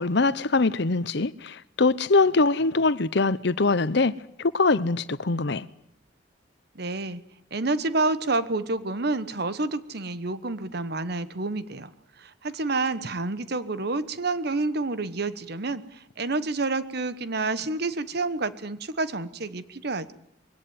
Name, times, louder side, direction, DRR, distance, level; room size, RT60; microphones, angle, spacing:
voice 1, 0.0-5.7, left 3 dB, 65° left, 0.9 m, -23 dB
voice 2, 6.7-7.2 7.5-11.9 12.2-20.1, right 3 dB, 60° right, 1.2 m, -29 dB
22.0 x 17.0 x 9.6 m
head